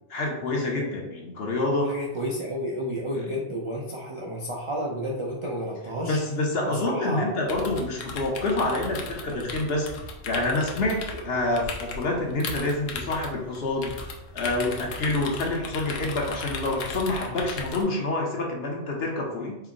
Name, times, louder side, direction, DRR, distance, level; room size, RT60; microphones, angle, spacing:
voice 1, 0.1-1.9 6.1-9.9 10.2-14.1 14.3-19.6, left 2 dB, 60° left, 0 dB, 0.9 m, -27 dB
voice 2, 1.8-6.2 6.6-7.4, equal, 50° right, -3 dB, 0.3 m, -31 dB
sound 1, 7.5-17.8, left 3 dB, 85° left, 1.0 m, -37 dB
4.4 x 2.0 x 3.6 m, 0.90 s
omnidirectional pair, 1.3 m